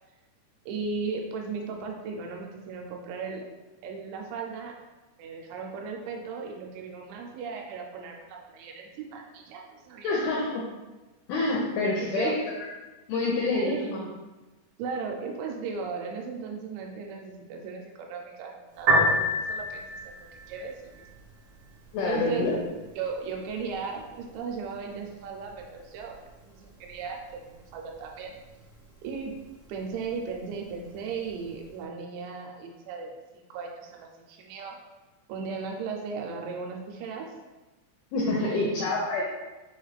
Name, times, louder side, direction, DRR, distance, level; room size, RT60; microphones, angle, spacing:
voice 1, 0.7-3.5 3.8-4.8 5.2-10.2 12.0-12.4 13.5-13.9 14.8-21.1 22.1-22.5 23.0-28.3 29.0-29.3 29.7-34.8 35.3-37.3 38.4-38.7, right 5 dB, 85° right, 1 dB, 2.9 m, -36 dB
voice 2, 10.0-10.6 11.3-12.3 13.1-14.1 21.9-22.6 38.1-39.3, left 3 dB, 85° left, -3 dB, 2.1 m, -27 dB
Piano, 18.7-31.7, equal, 65° right, 1.4 m, -34 dB
6.5 x 2.4 x 3.2 m, 1.1 s
omnidirectional pair, 5.0 m